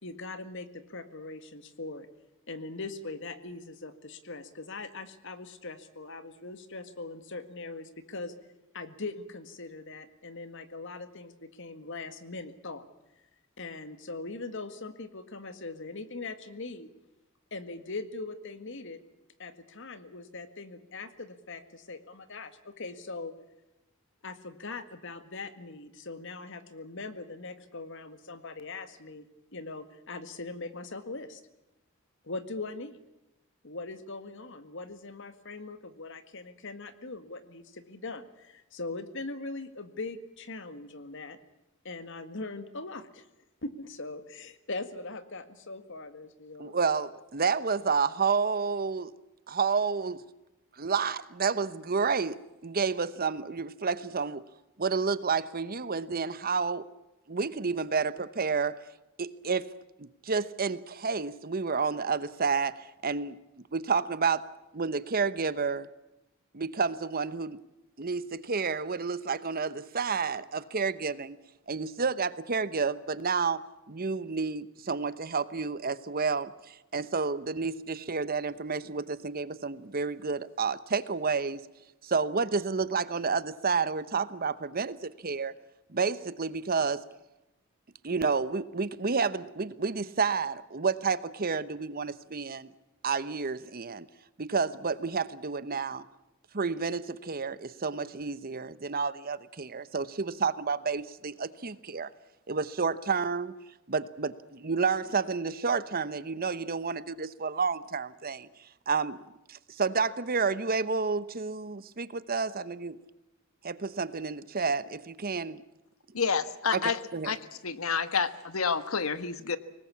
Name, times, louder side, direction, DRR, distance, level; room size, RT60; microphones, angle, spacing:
voice 1, 0.0-2.1 2.5-8.3 8.7-12.9 13.6-16.9 17.5-19.0 19.4-23.3 24.2-29.3 29.5-31.4 32.2-33.0 33.6-41.4 41.8-43.3 43.6-46.8, left 3 dB, 65° left, 11 dB, 1.9 m, -41 dB
voice 2, 46.6-49.1 49.5-50.2 50.8-54.5 54.8-56.9 57.3-58.8 59.2-59.7 60.0-63.4 63.7-64.4 64.7-65.9 66.5-67.6 68.0-71.4 71.7-73.6 73.9-81.6 82.0-85.5 85.9-87.0 88.0-92.7 93.0-94.1 94.4-96.0 96.5-102.1 102.5-103.5 103.9-108.5 108.9-109.2 109.5-113.0 113.6-115.6 116.7-117.3, right 5 dB, 45° right, 16 dB, 1.0 m, -30 dB
voice 3, 116.1-117.0 117.3-119.6, left 5 dB, 80° left, 13 dB, 1.3 m, -29 dB
24.0 x 19.5 x 8.5 m, 0.94 s
head